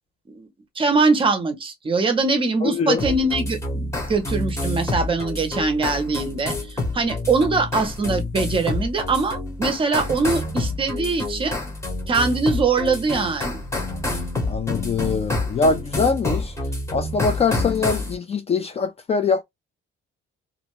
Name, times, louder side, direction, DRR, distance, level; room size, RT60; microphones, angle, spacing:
voice 1, 0.8-11.6 12.1-13.7, right 3 dB, 25° right, 0.6 m, -22 dB
voice 2, 2.6-3.0 14.5-16.5 16.9-19.4, left 5 dB, 30° left, 0.3 m, -23 dB
sound 1, 3.0-18.1, left 2 dB, 15° left, 0.9 m, -28 dB
2.5 x 2.2 x 2.9 m
cardioid pair, 180°, 21 cm